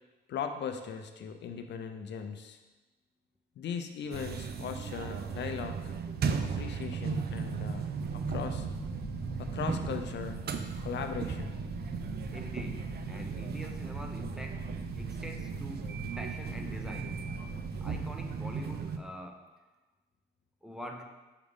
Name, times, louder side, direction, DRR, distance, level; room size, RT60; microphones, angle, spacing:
voice 1, 0.3-2.6 3.6-5.9 6.5-8.7 9.4-10.4 10.8-11.6, left 7 dB, 60° left, 6 dB, 0.6 m, -38 dB
sound 1, 4.1-19.0, right 6 dB, 55° right, 0.5 m, -36 dB
sound 2, 8.0-18.0, equal, 35° right, 1.9 m, -43 dB
voice 2, 12.3-14.6 14.9-17.2 17.8-19.5 20.6-21.0, equal, 5° right, 2 dB, 0.7 m, -45 dB
6.4 x 4.9 x 3.6 m, 1.2 s
cardioid pair, 90°, 20 cm